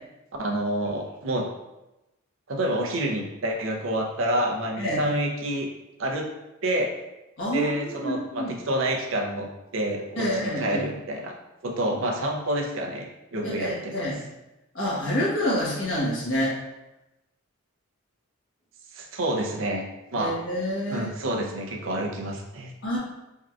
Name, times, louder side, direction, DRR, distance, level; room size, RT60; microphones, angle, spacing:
voice 1, 0.4-1.5 2.5-5.7 6.0-6.3 6.6-6.9 7.5-11.3 11.6-14.1 18.9-19.8 20.1-20.4 20.9-22.7, right 1 dB, 70° right, 2 dB, 0.6 m, -28 dB
voice 2, 7.4-8.5 10.2-10.8 13.4-14.2 14.7-16.5 20.2-21.1 22.8-23.0, equal, 65° left, -6 dB, 1.3 m, -27 dB
4.4 x 3.6 x 2.4 m, 0.97 s
head